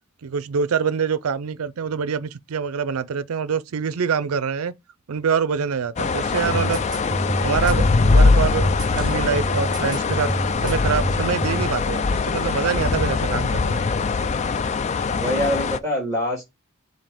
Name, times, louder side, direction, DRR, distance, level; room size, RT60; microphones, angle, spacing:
voice 1, 0.2-4.7 5.1-6.8 7.4-7.8 8.1-10.3 10.6-13.9, right 6 dB, 85° right, 0.5 m, -25 dB
sound 1, 6.0-15.8, left 4 dB, 30° left, 0.3 m, -22 dB
sound 2, 6.5-11.7, right 1 dB, 20° right, 0.8 m, -28 dB
voice 2, 13.8-14.2 15.2-16.4, left 1 dB, 15° left, 3.0 m, -25 dB
7.3 x 2.8 x 4.8 m
head